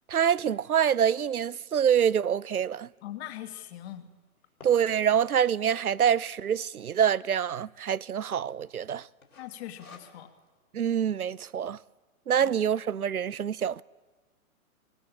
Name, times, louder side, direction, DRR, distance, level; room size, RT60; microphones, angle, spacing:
voice 1, 0.1-2.9 4.6-9.1 10.7-11.8 12.3-13.8, right 8 dB, 80° right, 0.7 m, -26 dB
sound 1, 3.0-3.1 3.4-5.5 6.2-6.6 6.9-7.0 7.2-7.4 7.9-8.3 8.5-8.8 9.2-10.5, left 4 dB, 75° left, 6.3 m, -52 dB
voice 2, 3.0-4.1 9.4-10.3 12.4-12.5, left 12 dB, 45° left, 2.4 m, -41 dB
24.0 x 20.0 x 8.6 m
figure-of-eight pair, 115°, 44 cm